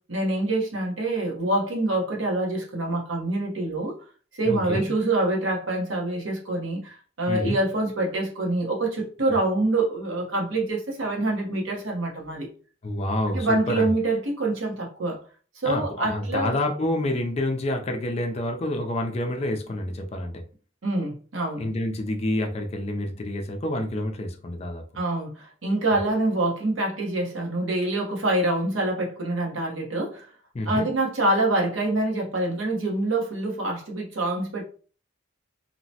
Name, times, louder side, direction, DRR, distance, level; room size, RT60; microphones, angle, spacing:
voice 1, 0.1-4.0 4.3-12.5 13.3-15.2 15.5-16.6 20.8-21.7 24.9-30.3 30.7-34.6, right 2 dB, 85° right, -1 dB, 1.0 m, -26 dB
voice 2, 4.4-4.9 7.3-7.6 12.8-13.9 15.7-20.4 21.6-24.8 30.5-30.9, left 1 dB, 30° left, 4 dB, 0.4 m, -28 dB
2.8 x 2.1 x 2.7 m, 0.40 s
head